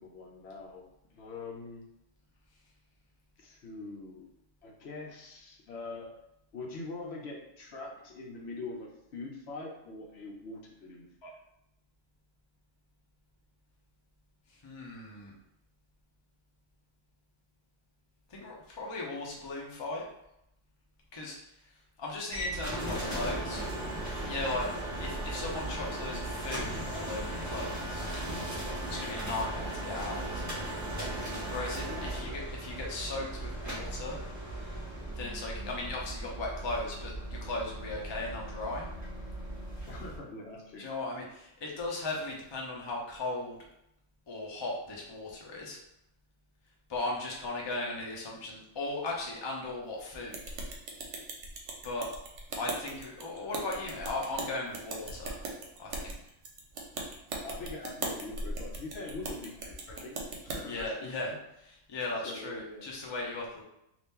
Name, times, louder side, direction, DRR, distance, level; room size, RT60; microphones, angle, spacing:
voice 1, 0.0-1.8 3.4-4.3 4.6-6.1 6.5-11.4 31.9-32.9 39.9-40.9 57.4-60.2 60.4-61.4 62.2-62.9, left 3 dB, 60° left, -1 dB, 0.8 m, -43 dB
voice 2, 14.5-15.3 18.3-20.1 21.1-21.4 22.0-23.6 24.3-24.7 25.0-28.1 28.9-30.7 31.5-34.2 35.1-38.9 40.8-43.6 44.3-45.8 46.9-50.4 51.8-52.1 52.5-55.4 55.8-56.2 60.6-63.6, left 2 dB, 35° left, -2 dB, 0.4 m, -37 dB
sound 1, 22.3-40.2, right 1 dB, 20° right, 0.6 m, -37 dB
sound 2, 50.3-60.6, right 3 dB, 65° right, 0.9 m, -39 dB
2.8 x 2.5 x 3.5 m, 0.81 s
omnidirectional pair, 1.3 m